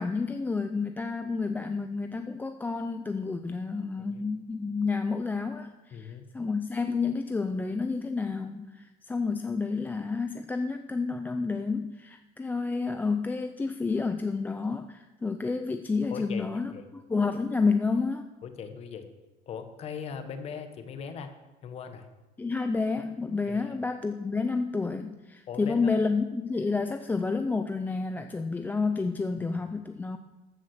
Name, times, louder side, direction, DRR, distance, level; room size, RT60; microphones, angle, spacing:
voice 1, 0.0-18.3 22.4-30.2, left 4 dB, 10° left, 7 dB, 0.4 m, -30 dB
voice 2, 5.9-6.3 16.1-16.9 18.4-19.1 19.5-21.3 21.6-22.1 23.5-23.7 25.5-26.0, left 6 dB, 45° left, 8 dB, 1.3 m, -39 dB
14.5 x 7.4 x 6.5 m, 1.1 s
cardioid pair, 150°, 15 cm